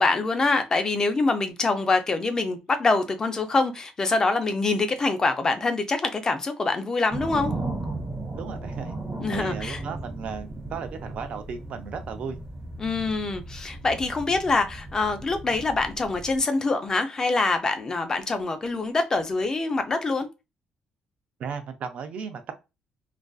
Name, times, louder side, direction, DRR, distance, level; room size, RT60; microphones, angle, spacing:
voice 1, 0.0-7.5 9.2-9.8 12.8-20.3, left 3 dB, 25° left, 0.4 m, -25 dB
sound 1, 7.1-16.4, right 2 dB, 25° right, 0.9 m, -36 dB
voice 2, 8.3-9.0 9.3-12.4 21.4-22.5, right 6 dB, 55° right, 0.5 m, -35 dB
2.4 x 2.3 x 2.2 m
cardioid pair, 130°, 3 cm